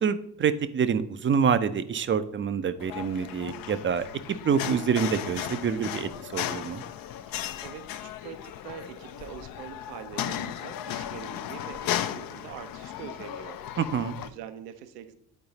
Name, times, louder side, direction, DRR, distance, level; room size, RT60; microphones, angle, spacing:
voice 1, 0.0-6.8 13.8-14.1, right 7 dB, 25° right, 12 dB, 0.5 m, -27 dB
sound 1, 2.8-14.3, left 11 dB, 45° left, 0.6 m, -36 dB
voice 2, 7.3-13.6 14.2-15.1, right 9 dB, 75° right, 9 dB, 0.7 m, -44 dB
9.1 x 4.7 x 4.0 m, 0.72 s
figure-of-eight pair, 50°, 48 cm